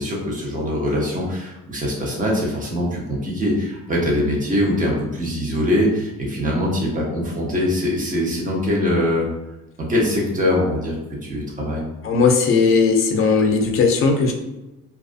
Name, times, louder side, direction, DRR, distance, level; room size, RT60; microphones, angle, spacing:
voice 1, 0.0-9.3 9.8-11.0 11.2-11.8, left 1 dB, 25° right, -3 dB, 0.7 m, -22 dB
voice 2, 12.0-14.3, left 4 dB, 45° left, 2 dB, 0.4 m, -17 dB
2.4 x 2.3 x 2.4 m, 1.0 s
cardioid pair, 150°, 31 cm